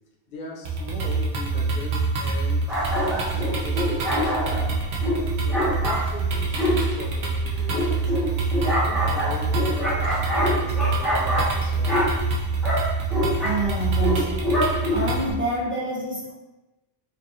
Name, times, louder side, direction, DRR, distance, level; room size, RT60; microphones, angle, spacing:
voice 1, 0.3-2.7 3.0-4.8 5.2-8.1 8.6-12.4, left 2 dB, 55° left, -1 dB, 0.8 m, -39 dB
sound 1, 0.7-15.3, right 3 dB, 75° right, 0.9 m, -26 dB
sound 2, 2.7-15.3, equal, ahead, 0.8 m, -26 dB
voice 2, 13.4-14.5 14.9-16.3, right 1 dB, 15° right, -5 dB, 0.4 m, -28 dB
4.6 x 2.5 x 2.7 m, 1.1 s
omnidirectional pair, 1.1 m